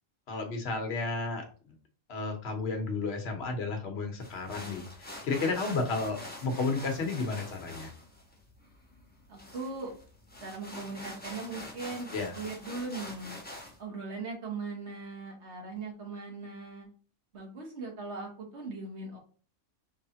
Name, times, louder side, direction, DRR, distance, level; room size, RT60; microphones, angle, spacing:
voice 1, 0.3-1.7 2.1-7.9 12.1-12.3, left 3 dB, 55° left, 4 dB, 1.2 m, -32 dB
sound 1, 4.2-13.8, left 1 dB, 10° left, 0.9 m, -45 dB
voice 2, 9.3-9.9 10.4-13.3 13.8-16.9 17.3-19.2, right 3 dB, 55° right, 0 dB, 1.6 m, -39 dB
4.8 x 3.3 x 2.8 m, 0.41 s
omnidirectional pair, 1.4 m